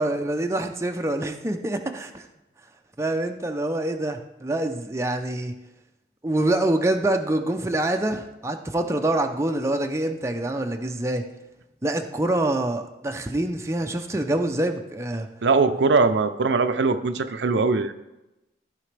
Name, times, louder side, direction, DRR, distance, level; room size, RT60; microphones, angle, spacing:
voice 1, 0.0-2.2 3.0-5.5 6.2-11.2 11.8-15.3 15.7-15.8, right 1 dB, 15° right, 4 dB, 0.5 m, -25 dB
voice 2, 15.4-17.9, right 4 dB, 85° right, 9 dB, 0.5 m, -21 dB
14.5 x 5.0 x 3.3 m, 0.96 s
head